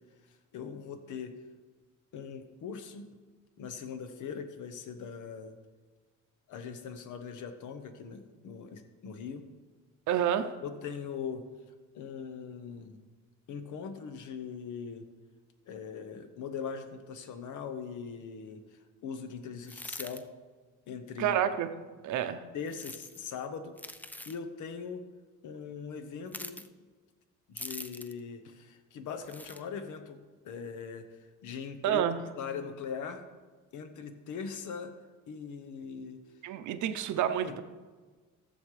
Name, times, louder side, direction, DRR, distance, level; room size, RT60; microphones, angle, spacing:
voice 1, 0.2-1.4 2.1-3.1 3.6-5.6 6.5-9.4 10.6-11.5 11.9-13.0 13.5-15.1 15.7-20.2 20.9-21.4 22.5-23.8 24.3-25.0 25.4-26.6 27.5-30.2 30.4-32.0 32.4-33.2 33.7-34.9 35.3-36.2 37.4-37.6, left 6 dB, 75° left, 9 dB, 1.0 m, -41 dB
voice 2, 10.1-10.5 21.2-21.7 22.0-22.4 31.8-32.3 36.4-37.6, right 10 dB, 70° right, 9 dB, 0.7 m, -29 dB
sound 1, 19.6-20.2 22.7-23.2 23.8-24.4 26.3-26.7 27.6-28.2 29.2-29.6, left 1 dB, 5° left, 0.3 m, -43 dB
14.5 x 7.2 x 3.2 m, 1.4 s
cardioid pair, 125°, 31 cm